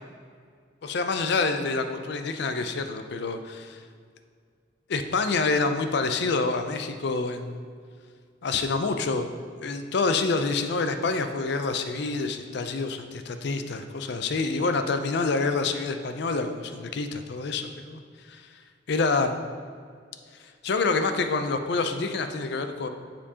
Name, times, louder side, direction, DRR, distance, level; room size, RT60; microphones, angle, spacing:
voice 1, 0.8-3.8 4.9-7.6 8.4-9.3 9.6-18.0 18.3-18.4 18.9-19.4 20.6-22.9, left 3 dB, 55° left, 8 dB, 0.4 m, -27 dB
9.8 x 4.4 x 2.8 m, 2.1 s
head